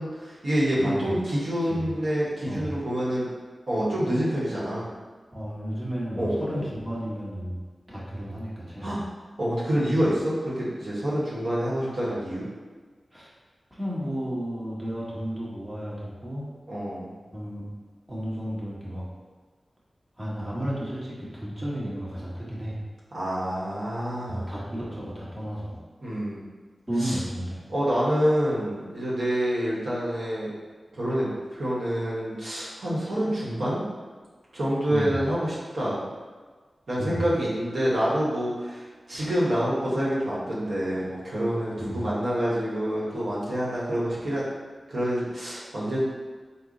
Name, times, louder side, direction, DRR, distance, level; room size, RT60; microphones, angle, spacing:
voice 1, 0.0-3.3 3.7-4.8 6.2-6.6 8.8-9.0 9.4-12.5 16.7-17.1 23.1-24.5 26.0-26.4 27.0-27.2 27.7-30.5 30.9-33.8 34.5-36.0 36.9-44.5 44.9-46.1, equal, 75° right, -7 dB, 0.9 m, -27 dB
voice 2, 0.8-1.1 1.6-1.9 2.5-2.7 5.3-7.6 7.9-9.0 13.1-13.3 13.7-16.5 17.3-17.7 18.1-19.0 20.2-22.8 24.3-25.8 26.9-27.6 34.9-35.2 37.0-37.2 41.8-42.0, equal, 20° right, -7 dB, 1.1 m, -33 dB
3.6 x 2.0 x 3.7 m, 1.4 s
cardioid pair, 50°, 0 cm